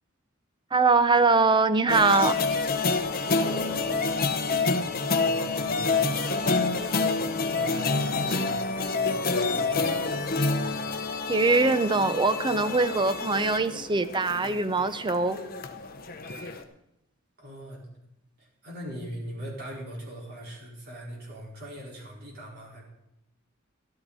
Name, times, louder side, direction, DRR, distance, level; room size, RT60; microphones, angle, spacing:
voice 1, 0.7-2.4 11.3-15.4, right 3 dB, 20° right, 12 dB, 0.6 m, -22 dB
sound 1, 1.9-16.6, left 3 dB, 45° left, 0.9 m, -28 dB
voice 2, 3.4-4.0 4.6-10.0 17.4-17.8 18.4-22.8, equal, 50° right, -4 dB, 4.6 m, -41 dB
13.5 x 12.5 x 4.1 m, 0.84 s
head